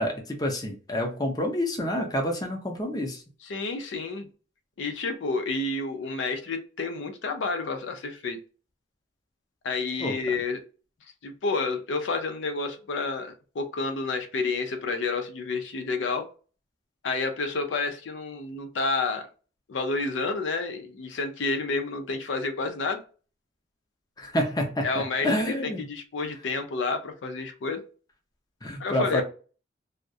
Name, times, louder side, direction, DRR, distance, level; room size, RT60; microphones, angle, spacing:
voice 1, 0.0-3.2 10.0-10.2 24.2-25.8 28.6-29.2, left 1 dB, 20° left, 2 dB, 0.5 m, -28 dB
voice 2, 3.4-4.3 4.8-8.4 9.6-10.6 11.2-16.3 17.0-19.3 19.7-23.0 24.8-25.3 25.6-27.8 28.8-29.2, left 3 dB, 85° left, 6 dB, 0.5 m, -30 dB
2.3 x 2.0 x 2.6 m, 0.36 s
head